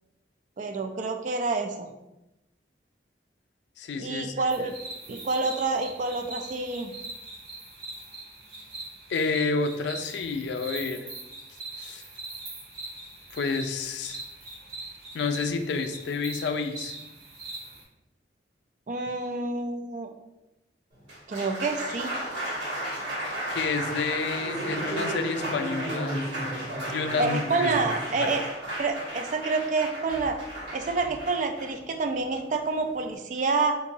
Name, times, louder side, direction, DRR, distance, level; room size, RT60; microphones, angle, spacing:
voice 1, 0.6-1.9 4.0-4.8 5.1-6.9 18.9-20.1 21.3-22.1 27.2-28.5 28.8-30.4 30.7-33.8, right 3 dB, 45° right, 5 dB, 0.3 m, -28 dB
voice 2, 3.8-4.3 9.1-11.1 11.8-12.0 13.3-14.2 15.1-17.0 23.5-26.2 26.9-27.9 28.2-28.3, left 4 dB, 75° left, 7 dB, 0.3 m, -29 dB
sound 1, 4.5-17.8, right 2 dB, 60° right, 1.0 m, -42 dB
Applause, 20.9-33.2, right 1 dB, 85° right, 1.3 m, -33 dB
3.9 x 2.6 x 2.7 m, 0.95 s
head